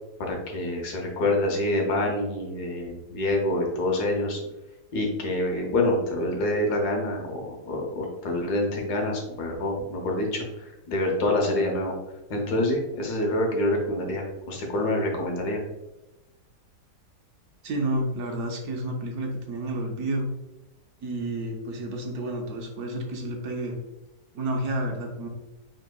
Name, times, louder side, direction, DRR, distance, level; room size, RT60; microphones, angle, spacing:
voice 1, 0.3-4.4 4.9-11.9 12.3-15.6, left 1 dB, 75° left, 1 dB, 1.4 m, -26 dB
voice 2, 17.6-20.3 21.0-23.8 24.3-25.3, right 1 dB, 70° right, 2 dB, 1.1 m, -30 dB
5.0 x 3.4 x 2.2 m, 0.98 s
omnidirectional pair, 1.8 m